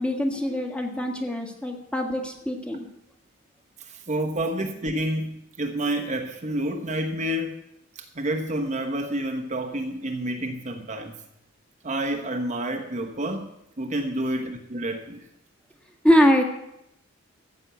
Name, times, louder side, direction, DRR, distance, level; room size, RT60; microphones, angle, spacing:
voice 1, 0.0-2.8 16.0-16.4, equal, 5° left, 1.6 m, -23 dB
voice 2, 3.8-7.6 7.9-11.2 11.8-13.5 13.8-15.2, right 1 dB, 35° right, 1.0 m, -29 dB
15.0 x 6.2 x 8.3 m
head